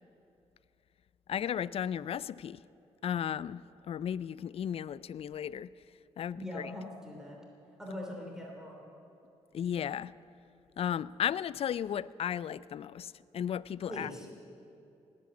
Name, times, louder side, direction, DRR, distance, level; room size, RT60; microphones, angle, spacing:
voice 1, 1.3-2.6 3.0-5.7 6.2-6.7 9.5-10.1 10.8-14.3, left 9 dB, 55° left, 19 dB, 0.4 m, -35 dB
voice 2, 6.3-7.4 7.8-8.9 13.9-14.3, left 1 dB, 5° right, -1 dB, 3.0 m, -41 dB
18.5 x 8.7 x 8.4 m, 2.8 s
cardioid pair, 75°, 12 cm